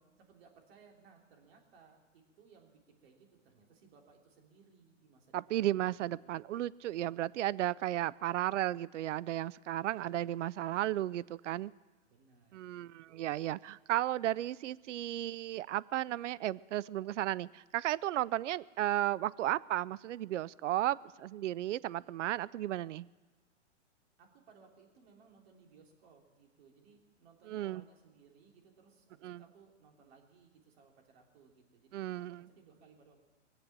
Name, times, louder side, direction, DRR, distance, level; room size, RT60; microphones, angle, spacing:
voice 1, 0.2-5.9 6.2-6.4 9.9-10.3 12.0-13.7 24.2-33.2, right 5 dB, 55° right, 3.4 m, -62 dB
voice 2, 5.3-11.7 12.5-23.1 27.5-27.8 29.2-29.4 31.9-32.4, right 13 dB, 75° right, 0.5 m, -34 dB
22.0 x 7.9 x 7.4 m
hypercardioid pair, 140°, 37 cm